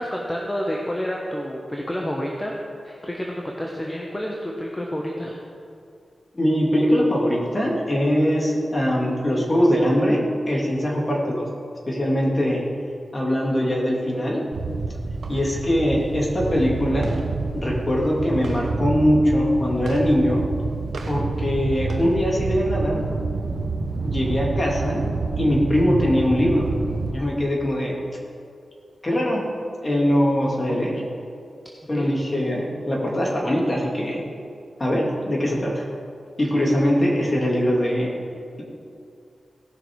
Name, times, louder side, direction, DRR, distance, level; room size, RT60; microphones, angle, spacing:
voice 1, 0.0-2.5 2.8-5.4 31.9-32.1, equal, 15° left, -1 dB, 1.1 m, -29 dB
voice 2, 6.3-11.5 11.9-12.6 13.1-14.4 15.3-17.2 17.5-20.4 21.1-23.0 24.0-25.0 25.4-26.7 27.1-28.0 29.0-29.5 29.8-31.0 31.9-34.2 34.8-35.8 36.4-38.1, equal, 30° left, -3 dB, 2.7 m, -22 dB
sound 1, 14.5-27.1, right 3 dB, 85° right, 0.9 m, -28 dB
18.0 x 6.1 x 4.7 m, 2.4 s
wide cardioid pair, 85°, 0 cm